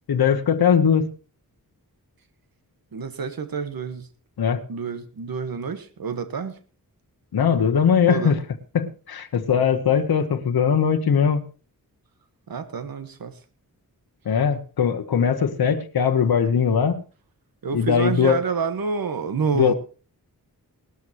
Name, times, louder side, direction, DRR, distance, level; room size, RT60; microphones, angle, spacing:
voice 1, 0.1-1.1 4.4-4.6 7.3-8.4 8.7-11.4 14.2-17.0 17.7-18.4 19.5-19.7, left 7 dB, 85° left, 6 dB, 1.1 m, -20 dB
voice 2, 2.9-4.1 4.7-6.6 8.1-8.4 12.5-13.4 17.6-19.7, right 5 dB, 75° right, 10 dB, 1.5 m, -28 dB
19.0 x 12.5 x 3.0 m, 0.35 s
wide cardioid pair, 85°, 36 cm